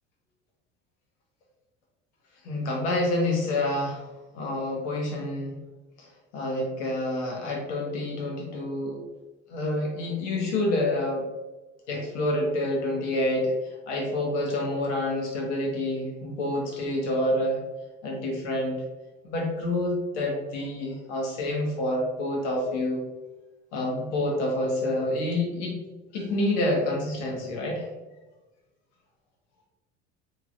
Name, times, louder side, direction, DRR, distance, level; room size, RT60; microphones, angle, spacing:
voice 1, 2.4-4.1 4.3-5.6 6.0-9.0 9.5-11.3 11.9-17.6 18.0-18.8 19.2-23.1 23.7-25.8 26.1-27.9, left 1 dB, 70° left, 0 dB, 1.1 m, -28 dB
3.1 x 2.8 x 2.5 m, 1.1 s
hypercardioid pair, 70°, 36 cm